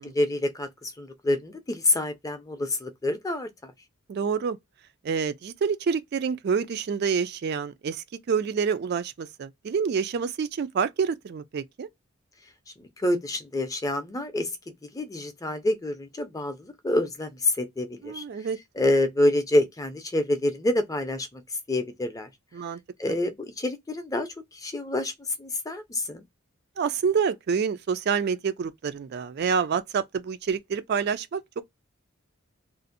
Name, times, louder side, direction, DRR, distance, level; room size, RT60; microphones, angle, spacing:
voice 1, 0.0-3.7 12.8-14.5 14.8-18.2 18.8-21.4 21.7-22.3 23.0-26.2, left 1 dB, 15° left, 0.5 m, -27 dB
voice 2, 4.1-4.6 5.0-11.9 18.0-18.6 22.5-22.8 26.8-31.4, right 6 dB, 50° right, 0.3 m, -27 dB
2.5 x 2.0 x 2.5 m
head